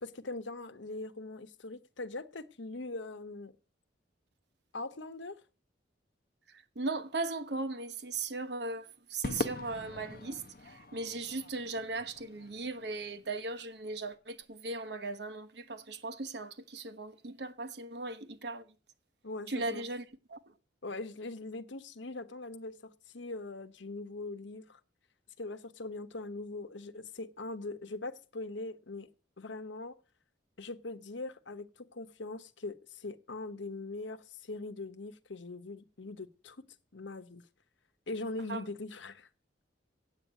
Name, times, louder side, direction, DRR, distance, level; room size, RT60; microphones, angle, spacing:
voice 1, 0.0-3.5 4.7-5.4 19.2-19.8 20.8-24.8 25.4-29.1 29.4-30.0 30.6-36.7 36.9-37.4 38.1-39.3, left 2 dB, 75° left, 1.0 m, -41 dB
voice 2, 6.5-18.6 19.5-20.4 38.5-38.6, right 3 dB, 60° right, 1.0 m, -38 dB
Crowd / Fireworks, 9.2-13.7, left 2 dB, 50° left, 0.7 m, -42 dB
8.5 x 8.1 x 9.2 m
head